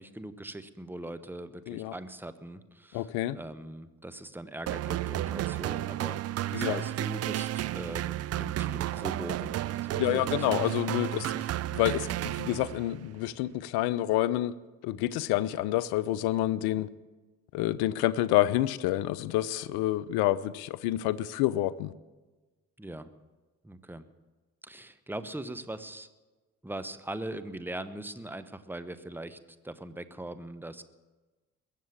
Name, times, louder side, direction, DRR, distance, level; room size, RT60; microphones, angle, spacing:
voice 1, 0.0-8.1 8.4-9.6 9.8-10.5 11.0-11.4 12.0-12.5 22.8-23.1 23.6-24.0 24.6-26.1 26.6-29.4 29.6-30.8, right 1 dB, 5° right, 1.0 m, -41 dB
voice 2, 2.9-3.4 6.5-6.8 9.9-11.3 11.7-14.5 14.8-16.9 17.5-21.9, left 14 dB, 70° left, 0.7 m, -28 dB
sound 1, 4.7-13.0, right 13 dB, 40° right, 0.4 m, -32 dB
21.5 x 7.5 x 7.2 m
hypercardioid pair, 45°, 40 cm